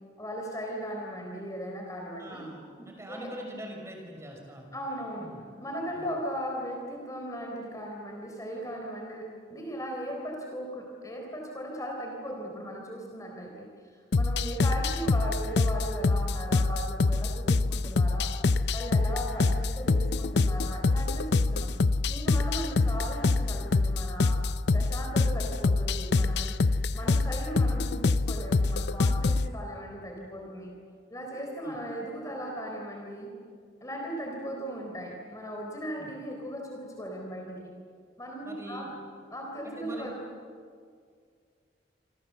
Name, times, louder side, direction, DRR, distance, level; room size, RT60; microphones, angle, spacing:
voice 1, 0.2-2.4 2.8-3.3 4.7-5.3 5.6-13.7 14.1-18.3 18.7-21.7 22.1-24.4 24.7-26.6 26.9-30.7 31.1-33.3 33.8-37.7 38.2-38.9 39.3-40.2, equal, 20° left, 0 dB, 4.1 m, -37 dB
voice 2, 2.1-4.7 5.2-5.4 6.0-6.1 31.6-31.8 36.0-36.1 38.4-38.9 39.6-40.1, right 1 dB, 15° right, 1 dB, 5.8 m, -43 dB
sound 1, 14.1-29.5, left 3 dB, 65° left, 0.6 m, -25 dB
27.5 x 26.5 x 7.8 m, 2.1 s
head